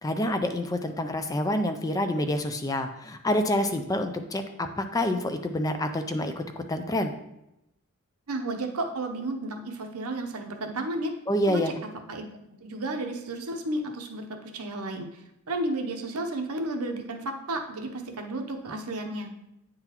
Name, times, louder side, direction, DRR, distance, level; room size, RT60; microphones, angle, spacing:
voice 1, 0.0-7.1 11.3-11.8, left 1 dB, 15° left, 7 dB, 0.3 m, -27 dB
voice 2, 8.3-11.1 11.5-11.6 12.1-12.3 12.6-15.1 15.5-19.3, right 2 dB, 80° right, 4 dB, 0.8 m, -32 dB
8.9 x 3.8 x 2.9 m, 0.87 s
head